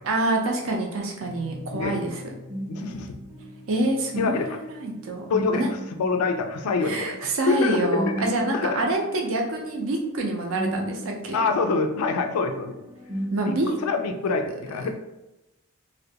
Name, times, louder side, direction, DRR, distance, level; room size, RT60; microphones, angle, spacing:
voice 1, 0.0-2.2 3.7-5.2 5.5-5.7 6.8-11.4 13.3-13.7 14.8-14.9, right 2 dB, 65° right, 1 dB, 0.5 m, -26 dB
sound 1, 1.2-14.1, equal, 10° right, 0.5 m, -37 dB
voice 2, 1.7-2.0 2.7-3.2 4.2-4.6 5.3-5.6 6.0-8.8 11.3-12.8 13.5-14.9, left 4 dB, 85° left, 6 dB, 0.3 m, -26 dB
2.4 x 2.1 x 2.7 m, 0.94 s
head